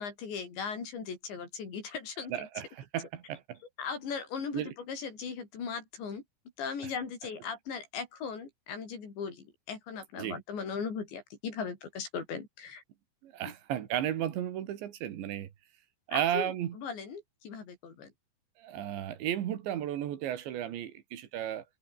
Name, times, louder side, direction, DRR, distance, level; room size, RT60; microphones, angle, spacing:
voice 1, 0.0-2.5 3.8-6.2 6.6-12.8 16.1-18.1, left 6 dB, 70° left, 7.8 m, -38 dB
voice 2, 2.3-3.6 4.5-4.7 10.2-10.4 13.2-15.5 16.1-16.8 18.6-21.6, right 11 dB, 75° right, 4.3 m, -34 dB
omnidirectional pair, 5.3 m